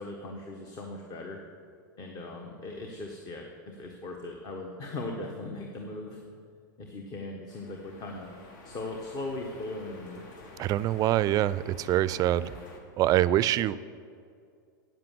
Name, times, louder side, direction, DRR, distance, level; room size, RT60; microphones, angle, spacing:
voice 1, 0.0-1.4 2.0-6.2 6.8-8.3 8.6-10.2, left 2 dB, 35° left, 2 dB, 1.3 m, -39 dB
sound 1, 7.5-12.8, left 2 dB, 70° left, 2.1 m, -50 dB
voice 2, 10.6-12.5 13.0-13.8, right 13 dB, 35° right, 17 dB, 0.4 m, -25 dB
9.1 x 7.7 x 7.6 m, 2.3 s
hypercardioid pair, 110°, 11 cm